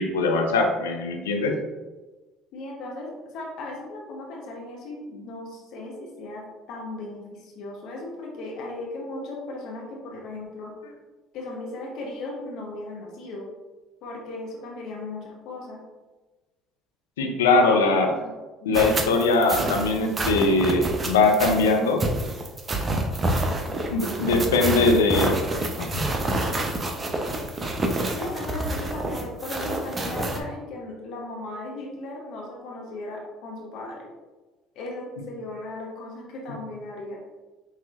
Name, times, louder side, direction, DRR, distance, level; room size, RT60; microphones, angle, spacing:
voice 1, 0.0-1.6 17.2-18.1 18.7-22.0 23.9-25.3 25.8-26.0, left 3 dB, 90° left, 2 dB, 0.5 m, -21 dB
voice 2, 2.5-10.7 11.3-13.5 14.0-15.8 17.6-18.3 18.6-18.8 28.1-34.1 34.7-37.2, left 2 dB, 65° left, -1 dB, 0.8 m, -37 dB
sound 1, 18.7-30.4, right 1 dB, 30° right, 0.7 m, -28 dB
5.7 x 2.9 x 2.4 m, 1.2 s
hypercardioid pair, 65°, 0 cm